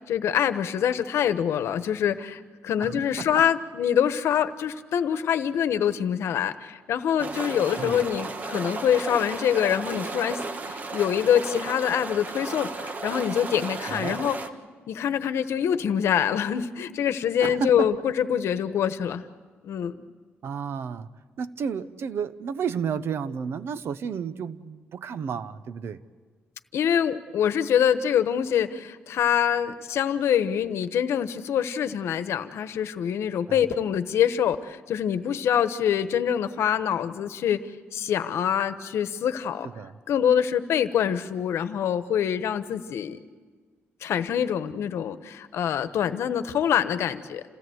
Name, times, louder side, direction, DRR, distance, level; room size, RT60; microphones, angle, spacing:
voice 1, 0.0-10.4 10.7-14.4 14.9-19.2 19.6-20.0 26.7-37.6 37.9-39.7 40.1-43.2 44.0-47.4, left 9 dB, 80° left, 11 dB, 1.1 m, -25 dB
voice 2, 2.8-3.3 7.8-8.0 13.9-14.2 17.4-17.9 20.4-21.1 21.4-26.0 33.5-33.6 39.6-39.9, right 6 dB, 60° right, 14 dB, 0.9 m, -32 dB
sound 1, 7.2-14.5, right 3 dB, 40° right, 1.3 m, -34 dB
28.0 x 16.5 x 8.0 m, 1.5 s
cardioid pair, 125°, 5 cm